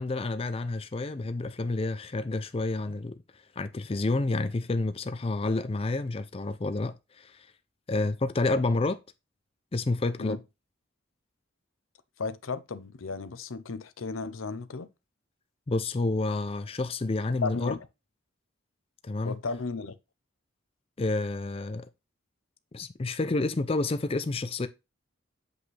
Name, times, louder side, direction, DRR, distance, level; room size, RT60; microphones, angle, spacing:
voice 1, 0.0-7.5 7.9-9.0 9.7-10.4 15.7-17.8 19.0-19.4 21.0-21.9 22.7-24.7, left 2 dB, 30° left, 0.4 m, -29 dB
voice 2, 12.2-14.9 17.4-17.8 19.2-20.0, left 4 dB, 90° left, 0.7 m, -34 dB
8.0 x 5.1 x 3.3 m
head